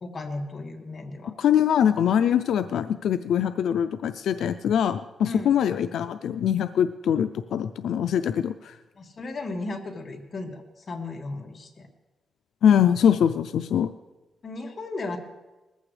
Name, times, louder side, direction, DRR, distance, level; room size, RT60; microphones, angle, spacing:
voice 1, 0.0-1.3 5.2-5.5 9.0-11.9 14.4-15.2, left 2 dB, 40° left, 2 dB, 1.8 m, -35 dB
voice 2, 1.4-8.8 12.6-13.9, left 9 dB, 90° left, 11 dB, 0.4 m, -23 dB
20.0 x 14.5 x 3.3 m, 1.1 s
wide cardioid pair, 135°, 0 cm